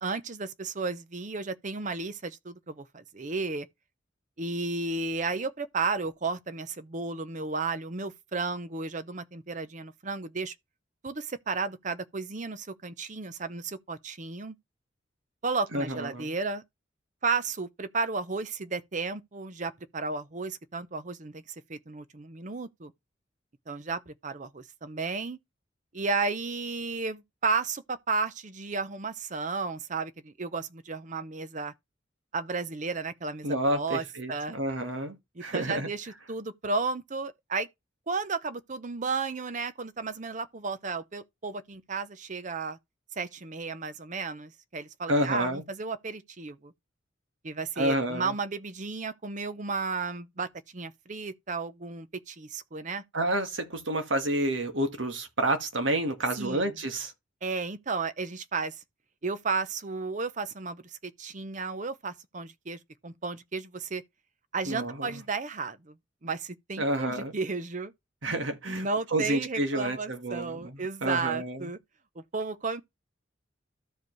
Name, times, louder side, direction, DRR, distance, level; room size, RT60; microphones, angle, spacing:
voice 1, 0.0-3.7 4.4-10.5 11.0-14.6 15.4-16.6 17.2-21.4 21.7-22.9 23.7-25.4 25.9-31.7 32.3-34.6 35.3-37.7 38.1-42.8 43.2-46.7 47.4-53.0 56.4-56.7 57.4-58.8 59.2-64.0 64.5-66.0 66.2-67.9 68.6-71.8 72.2-72.8, right 4 dB, 40° right, 0.7 m, -33 dB
voice 2, 15.7-16.3 33.4-35.9 45.1-45.6 47.8-48.3 53.1-57.1 64.6-65.2 66.8-67.3 68.2-71.7, right 1 dB, 85° right, 1.7 m, -29 dB
13.5 x 4.8 x 3.1 m
head